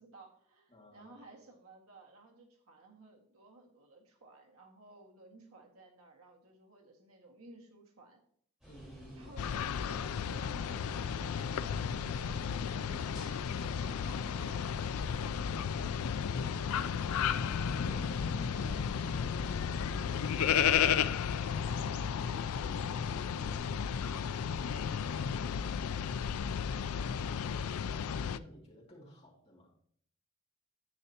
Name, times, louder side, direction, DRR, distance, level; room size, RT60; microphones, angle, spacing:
voice 1, 0.0-8.2 9.2-14.8 18.3-18.9, right 2 dB, 85° right, 1 dB, 1.9 m, -56 dB
voice 2, 0.7-1.1 8.7-9.3 15.1-16.3 16.7-18.7 19.0-27.2 27.7-29.7, equal, 25° left, -2 dB, 2.3 m, -55 dB
sound 1, 8.6-19.5, equal, 5° right, 4.0 m, -53 dB
sound 2, 9.4-28.4, left 7 dB, 85° left, 0.4 m, -33 dB
10.0 x 8.8 x 2.9 m, 0.62 s
head